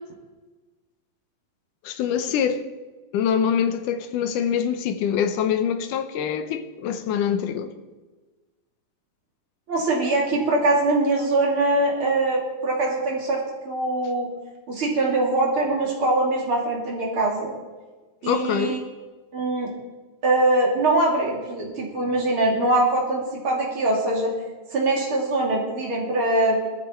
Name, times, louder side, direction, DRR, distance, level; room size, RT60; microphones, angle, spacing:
voice 1, 1.8-2.6 3.1-7.7 18.2-18.8, left 8 dB, 75° left, 2.3 m, -24 dB
voice 2, 9.7-14.3 14.7-17.5 18.2-18.8 19.3-19.7 20.2-24.3 24.7-26.7, right 2 dB, 40° right, 3.2 m, -22 dB
18.0 x 13.5 x 4.4 m
omnidirectional pair, 3.9 m